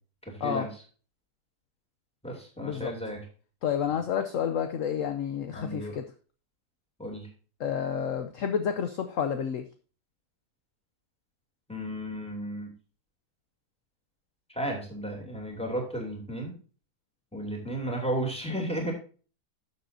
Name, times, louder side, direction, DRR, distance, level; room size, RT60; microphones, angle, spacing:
voice 1, 0.2-0.7 2.2-3.2 5.5-6.0 7.0-7.3 11.7-12.7 14.5-16.5 17.3-18.9, right 1 dB, 5° left, 0 dB, 2.8 m, -33 dB
voice 2, 2.6-2.9 3.6-6.0 7.6-9.6, left 8 dB, 60° left, 7 dB, 1.0 m, -30 dB
12.5 x 7.4 x 2.7 m, 0.38 s
omnidirectional pair, 1.8 m